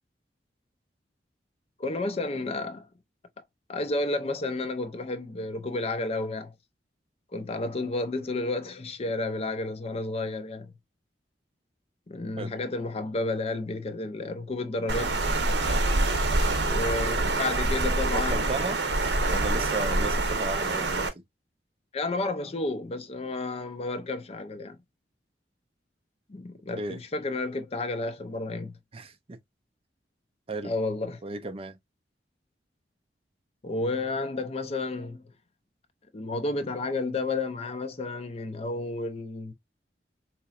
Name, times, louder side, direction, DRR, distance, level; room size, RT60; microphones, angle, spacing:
voice 1, 1.8-2.9 3.7-6.5 7.3-10.7 12.1-15.2 16.6-18.6 21.9-24.8 26.3-28.7 30.6-31.2 33.6-35.2 36.1-39.5, left 2 dB, 35° left, 0.5 m, -31 dB
Water, 14.9-21.1, right 2 dB, 75° right, 0.8 m, -26 dB
voice 2, 18.0-18.8 19.3-21.1 26.8-27.0 28.9-29.4 30.5-30.7 31.2-31.8, right 2 dB, 35° right, 0.5 m, -34 dB
4.0 x 2.9 x 2.3 m
head